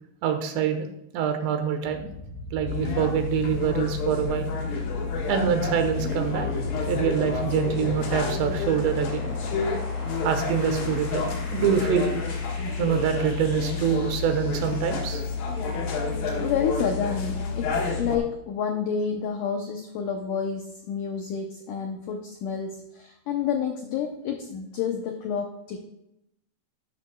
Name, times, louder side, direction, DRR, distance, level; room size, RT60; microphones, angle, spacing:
voice 1, 0.2-0.9 1.1-2.1 2.5-4.5 5.3-6.5 6.9-9.3 10.2-12.2 12.8-15.2, right 8 dB, 85° right, 6 dB, 3.4 m, -25 dB
sound 1, 1.8-15.6, equal, 25° left, 2.3 m, -40 dB
sound 2, 2.7-18.2, left 4 dB, 60° left, 2.9 m, -29 dB
voice 2, 16.3-25.8, left 7 dB, 90° left, 3 dB, 1.8 m, -29 dB
12.5 x 11.5 x 2.3 m, 0.83 s
omnidirectional pair, 5.0 m